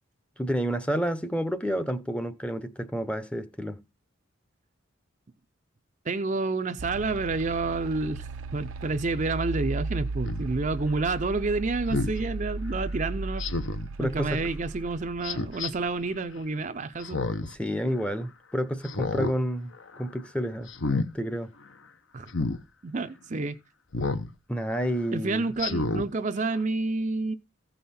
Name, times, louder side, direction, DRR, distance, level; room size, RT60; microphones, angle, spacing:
voice 1, 0.4-3.8 14.0-14.5 17.4-19.7 20.0-20.7 21.1-21.5 24.5-25.5, equal, 5° left, 0.7 m, -29 dB
voice 2, 6.1-8.3 8.5-13.4 14.0-17.2 22.1-22.3 22.8-23.6 25.1-27.3, right 3 dB, 35° right, 0.5 m, -29 dB
sound 1, 6.8-15.9, right 3 dB, 80° right, 0.6 m, -35 dB
Speech synthesizer, 10.2-10.4 11.9-12.2 13.4-13.9 15.2-15.7 17.0-17.5 17.9-18.0 18.8-19.4 19.7-20.0 20.7-21.1 22.3-22.6 23.9-24.3 24.8-24.9 25.6-26.1 26.5-26.6, left 3 dB, 65° left, 0.9 m, -29 dB
15.0 x 5.5 x 4.3 m
head